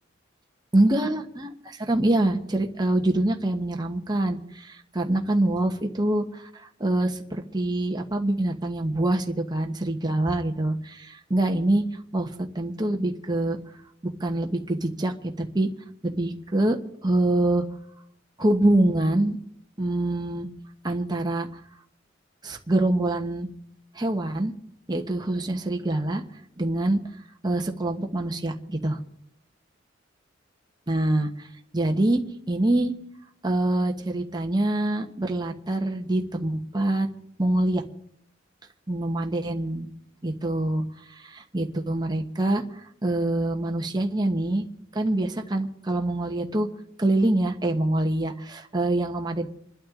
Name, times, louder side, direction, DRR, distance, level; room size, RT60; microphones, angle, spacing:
voice 1, 0.7-11.9 12.1-13.6 14.0-15.7 16.0-17.7 18.4-19.4 19.8-20.5 20.8-21.5 22.4-23.5 23.9-24.5 24.9-26.2 26.6-27.0 27.4-29.0 30.9-31.5 31.7-32.9 33.4-37.1 37.4-37.8 38.9-39.9 40.2-44.7 44.9-46.7 47.0-49.5, right 1 dB, 20° right, 3 dB, 1.2 m, -25 dB
27.0 x 12.0 x 3.8 m, 0.70 s
head